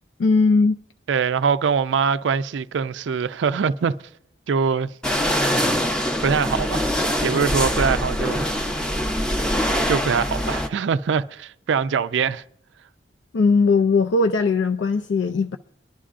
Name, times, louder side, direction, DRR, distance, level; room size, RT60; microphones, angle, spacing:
voice 1, 0.2-0.8 13.3-15.6, left 4 dB, 80° left, 0.4 m, -19 dB
voice 2, 1.1-3.9 4.5-4.9 5.2-5.9 6.2-6.9 7.2-8.5 9.9-12.4, right 6 dB, 80° right, 0.4 m, -23 dB
sound 1, 5.0-10.7, equal, 5° left, 0.6 m, -23 dB
24.0 x 11.5 x 2.5 m
head